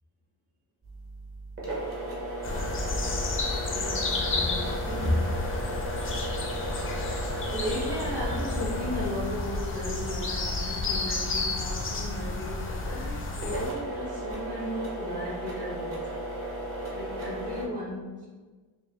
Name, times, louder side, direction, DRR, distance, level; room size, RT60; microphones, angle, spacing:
sound 1, 0.8-17.7, right 1 dB, 30° right, 0.7 m, -36 dB
sound 2, 2.4-13.7, left 3 dB, 30° left, 0.4 m, -31 dB
voice 1, 3.7-5.3 7.5-16.2 16.9-18.3, equal, 50° right, -6 dB, 1.5 m, -35 dB
5.2 x 2.3 x 2.9 m, 1.3 s
wide cardioid pair, 165°, 48 cm